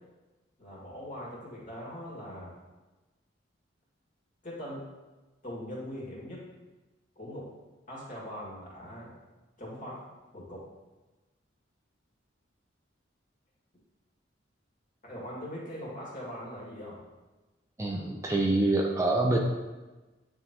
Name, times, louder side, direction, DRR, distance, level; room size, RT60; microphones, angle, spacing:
voice 1, 0.6-2.5 4.4-4.8 5.4-6.4 7.2-7.5 7.9-9.2 9.6-10.0 10.3-10.7 15.0-17.0, equal, 40° left, -5 dB, 2.0 m, -41 dB
voice 2, 17.8-19.4, right 2 dB, 15° right, 0 dB, 0.5 m, -26 dB
9.5 x 3.7 x 2.9 m, 1.2 s
head